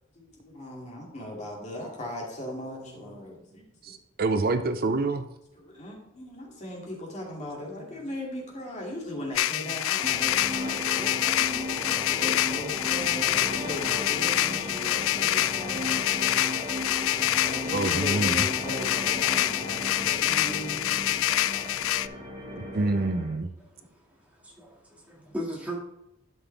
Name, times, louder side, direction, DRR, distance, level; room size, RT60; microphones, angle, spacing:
voice 1, 0.1-3.9 5.5-16.5 17.3-21.8, left 1 dB, 35° left, 2.4 m, -39 dB
voice 2, 3.8-5.3 17.7-18.4 22.7-23.5, right 3 dB, 50° right, 0.6 m, -27 dB
sound 1, 9.3-22.1, left 14 dB, 80° left, 0.3 m, -26 dB
sound 2, 10.0-23.4, left 1 dB, 25° right, 1.6 m, -36 dB
voice 3, 23.7-25.8, equal, 5° right, 2.0 m, -39 dB
12.0 x 5.9 x 3.4 m
head